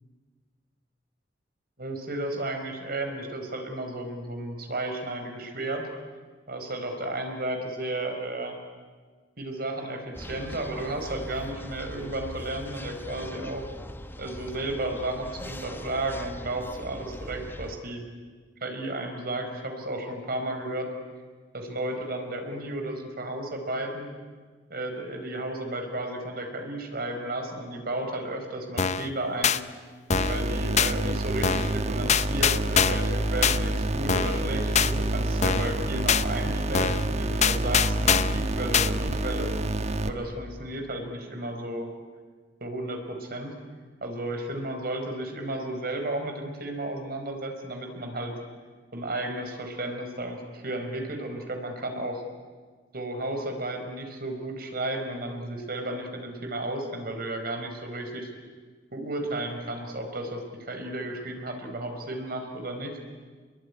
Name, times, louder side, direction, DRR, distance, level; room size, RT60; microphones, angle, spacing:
voice 1, 1.8-5.9 6.5-8.6 9.4-13.7 14.2-18.1 18.6-20.9 21.5-24.1 24.7-29.6 30.3-39.5 40.0-41.9 42.6-43.5 44.0-48.4 48.9-52.2 52.9-58.3 58.9-63.0, right 1 dB, 55° right, 4 dB, 4.7 m, -33 dB
sound 1, 10.1-17.8, equal, 10° left, 1.3 m, -40 dB
sound 2, 28.8-29.1 29.4-29.6 30.1-30.4 30.8-30.9 31.4-31.8 32.1-33.1 33.4-33.6 34.1-34.4 34.8-34.9 35.4-35.7 36.1-36.2 36.7-37.1 37.4-38.4 38.7-38.9, left 7 dB, 40° left, 0.7 m, -23 dB
sound 3, 30.1-40.1, right 1 dB, 40° right, 1.3 m, -28 dB
27.5 x 21.5 x 9.9 m, 1.5 s
head